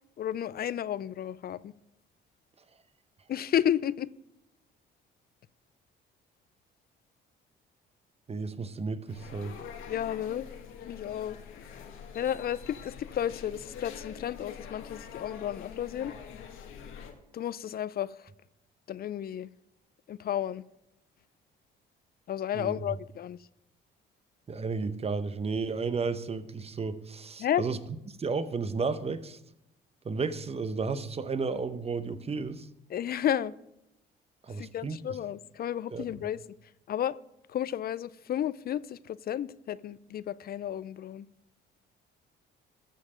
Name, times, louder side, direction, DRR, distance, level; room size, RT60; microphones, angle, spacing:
voice 1, 0.2-1.7 3.3-4.1 9.9-10.5 10.9-11.4 12.1-16.1 17.3-18.3 18.9-19.5 20.1-20.6 22.3-23.4 27.4-27.6 32.9-33.5 34.6-36.4 36.9-37.2 37.5-41.3, left 10 dB, 45° left, 0.4 m, -32 dB
voice 2, 8.3-9.6 22.5-22.7 24.5-27.8 28.1-29.4 30.0-32.7 34.5-35.0 35.9-36.0, right 4 dB, 30° right, 0.8 m, -33 dB
sound 1, 9.1-17.1, left 7 dB, 75° left, 1.5 m, -45 dB
13.0 x 6.5 x 5.0 m
supercardioid pair, 70°, 21 cm